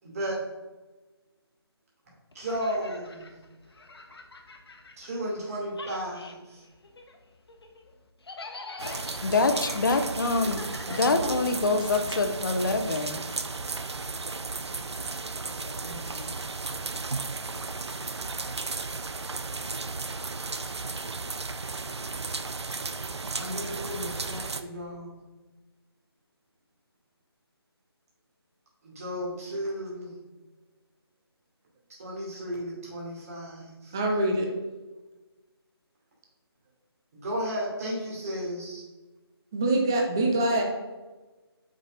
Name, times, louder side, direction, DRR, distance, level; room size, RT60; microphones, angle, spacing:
voice 1, 0.0-0.4 2.1-3.3 5.0-6.6 10.8-11.3 15.8-16.4 23.3-25.2 28.8-30.2 32.0-34.0 37.1-38.8, equal, 35° right, -4 dB, 2.3 m, -34 dB
sound 1, 2.3-5.4 5.7-11.7, left 3 dB, 70° left, 1.1 m, -45 dB
voice 2, 8.8-10.6 10.9-13.2 15.7-15.8 16.1-16.3, left 3 dB, 50° left, 7 dB, 0.8 m, -26 dB
sound 2, 8.8-24.6, right 3 dB, 90° right, 0.6 m, -34 dB
voice 3, 33.9-34.5 39.5-40.6, right 2 dB, 10° right, 1 dB, 0.4 m, -24 dB
7.8 x 5.2 x 3.8 m, 1.2 s
figure-of-eight pair, 165°, 14 cm